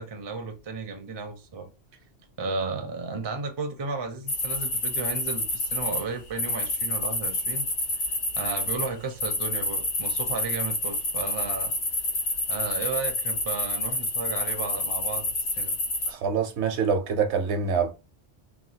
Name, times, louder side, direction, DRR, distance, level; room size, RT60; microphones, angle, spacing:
voice 1, 0.0-1.7 2.4-7.7 8.3-11.7 12.5-15.8, right 4 dB, 35° right, 0.4 m, -34 dB
sound 1, 4.3-6.0 6.4-8.9 9.2-16.1, left 2 dB, 80° left, 1.5 m, -28 dB
voice 2, 16.1-17.9, right 5 dB, 70° right, 0.9 m, -25 dB
3.3 x 2.3 x 2.7 m
omnidirectional pair, 1.2 m